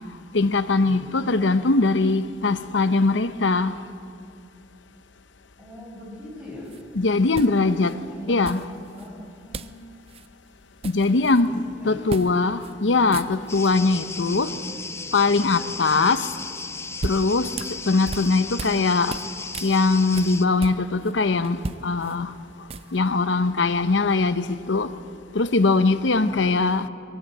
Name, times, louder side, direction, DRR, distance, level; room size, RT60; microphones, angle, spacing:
voice 1, 0.3-3.7 7.0-7.9 8.3-8.6 10.8-14.5 15.1-16.3 17.0-17.5 17.9-19.2 19.6-21.6 21.8-22.3 22.9-24.9 25.3-26.9, left 3 dB, 80° left, 12 dB, 0.8 m, -21 dB
voice 2, 5.6-6.8 7.5-8.4 8.9-9.7 11.4-12.5 14.5-14.8 26.3-26.5, left 1 dB, 5° right, -4 dB, 7.5 m, -42 dB
sound 1, 6.7-6.8 7.3-7.9 8.4-9.1 9.5-9.8 10.1-10.3 10.6-11.5 12.1-12.3 12.6-12.7 13.0-13.7 16.6-18.8 19.1-21.1 21.4-23.1, right 3 dB, 35° right, 0.4 m, -36 dB
sound 2, 13.5-20.5, left 4 dB, 15° left, 0.6 m, -35 dB
22.0 x 18.0 x 7.9 m, 2.4 s
head